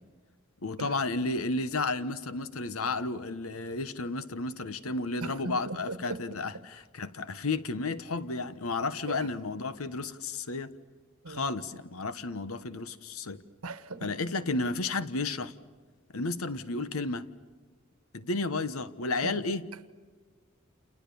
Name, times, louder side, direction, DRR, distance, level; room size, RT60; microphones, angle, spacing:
voice 1, 0.6-10.7 11.3-13.4 14.0-15.5 16.1-17.3 18.1-19.6, left 3 dB, 80° left, 1.2 m, -32 dB
voice 2, 5.2-6.2 6.5-6.6 9.1-9.3 11.2-11.5 13.6-14.1 19.2-19.4, right 3 dB, 85° right, 1.3 m, -38 dB
29.5 x 28.5 x 7.0 m
head